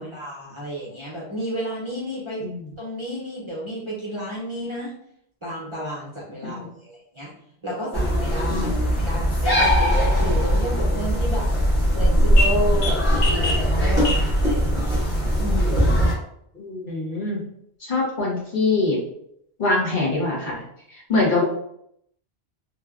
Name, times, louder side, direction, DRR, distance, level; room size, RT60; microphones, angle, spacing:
voice 1, 0.0-2.5 2.8-4.9 5.4-7.3 7.6-11.5 11.9-14.9 15.4-15.9, equal, 30° right, -7 dB, 0.7 m, -31 dB
sound 1, 7.9-16.1, equal, 75° left, 1.3 m, -20 dB
voice 2, 16.5-17.4 17.8-19.0 19.6-20.5 20.9-21.4, left 3 dB, 50° left, -5 dB, 1.0 m, -23 dB
3.1 x 2.2 x 2.4 m, 0.71 s
omnidirectional pair, 1.1 m